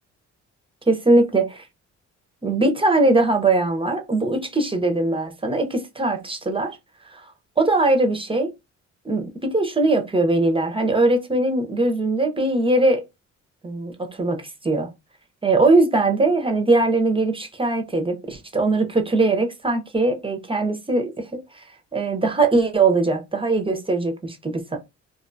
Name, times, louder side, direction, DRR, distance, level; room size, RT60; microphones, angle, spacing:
voice 1, 0.9-1.5 2.4-6.7 7.1-7.2 7.6-8.5 9.1-13.0 13.6-14.9 15.4-21.6 21.9-24.8, right 2 dB, 20° right, 0.5 m, -21 dB
2.5 x 2.2 x 2.5 m
cardioid pair, 90°, 30 cm